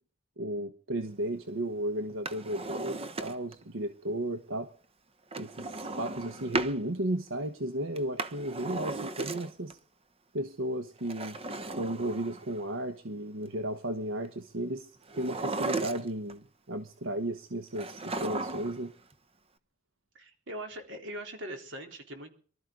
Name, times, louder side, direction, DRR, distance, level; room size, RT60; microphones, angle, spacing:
voice 1, 0.4-4.7 5.4-9.8 10.3-11.4 11.7-18.9, right 1 dB, 90° right, 8 dB, 1.2 m, -34 dB
Drawer open or close, 2.1-3.6 5.3-6.8 7.9-9.7 11.0-12.6 15.1-16.3 17.8-18.9 19.1-19.2, right 3 dB, 30° right, 1.1 m, -36 dB
voice 2, 20.1-22.3, right 1 dB, 65° right, 4 dB, 3.8 m, -41 dB
24.0 x 13.0 x 3.9 m, 0.44 s
head